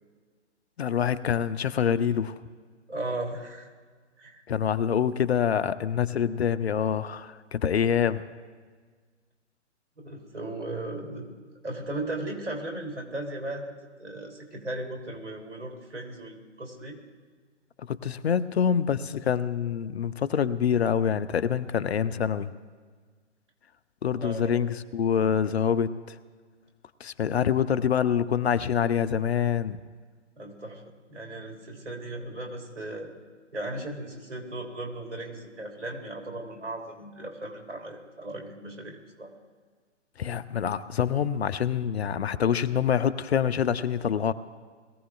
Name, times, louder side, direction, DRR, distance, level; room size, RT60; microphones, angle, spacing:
voice 1, 0.8-2.4 4.5-8.2 17.9-22.5 24.0-25.9 27.0-29.8 40.2-44.3, left 8 dB, 60° left, 14 dB, 0.7 m, -26 dB
voice 2, 2.9-3.7 4.2-4.4 10.0-11.4 11.6-17.0 24.2-24.5 30.4-30.8 31.1-33.1 33.5-39.3, right 2 dB, 75° right, 1 dB, 3.4 m, -37 dB
21.0 x 15.5 x 2.5 m, 1.5 s
figure-of-eight pair, 130°, 36 cm